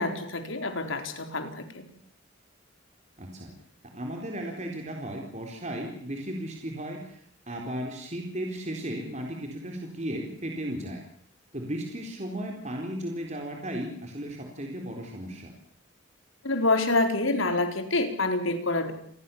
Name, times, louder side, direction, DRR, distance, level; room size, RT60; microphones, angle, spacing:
voice 1, 0.0-1.8 16.4-18.9, left 2 dB, 85° left, 6 dB, 4.5 m, -27 dB
voice 2, 3.2-3.5 3.9-11.0 11.5-15.5, right 1 dB, 35° right, 1 dB, 4.2 m, -35 dB
29.5 x 21.0 x 7.2 m, 0.64 s
head